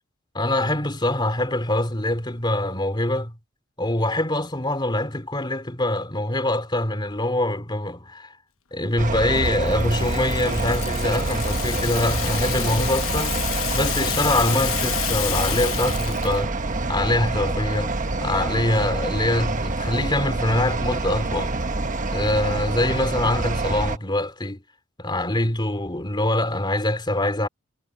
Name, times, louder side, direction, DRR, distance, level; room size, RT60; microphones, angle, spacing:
voice 1, 0.3-3.3 3.8-8.3 8.7-13.4 13.7-16.5 16.9-17.9 18.2-21.5 22.1-24.6 25.0-27.5, left 1 dB, 25° left, 3.1 m, -24 dB
sound 1, 9.0-24.0, right 2 dB, 40° right, 1.2 m, -26 dB
Rattle (instrument), 9.5-16.4, left 13 dB, 80° left, 1.2 m, -30 dB
head